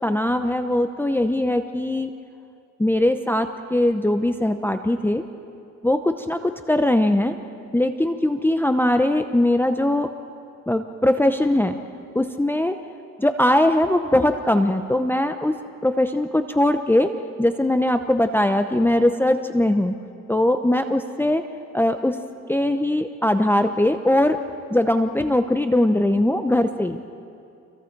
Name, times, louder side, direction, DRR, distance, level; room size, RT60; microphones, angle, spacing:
voice 1, 0.0-2.1 2.8-5.2 5.8-7.4 7.7-10.1 10.7-11.8 12.1-12.8 13.2-15.6 15.8-17.1 17.4-19.9 20.3-21.4 21.7-22.2 22.5-24.4 24.7-27.0, left 1 dB, 5° left, 7 dB, 0.8 m, -20 dB
29.5 x 23.5 x 4.7 m, 2.5 s
cardioid pair, 90°, 30 cm